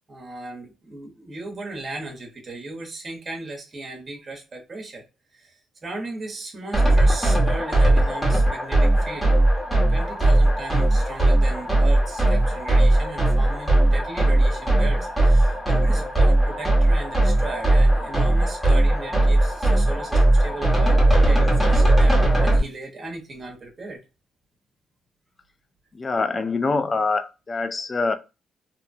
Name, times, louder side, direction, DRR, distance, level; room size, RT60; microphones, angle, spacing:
voice 1, 0.1-5.0 5.3-5.5 5.8-9.3 9.9-24.0, right 2 dB, 30° right, 0.9 m, -36 dB
sound 1, 6.7-22.6, right 1 dB, 10° left, 1.0 m, -18 dB
voice 2, 25.9-28.2, left 3 dB, 30° left, 0.3 m, -24 dB
2.8 x 2.1 x 2.5 m
cardioid pair, 115°, 0 cm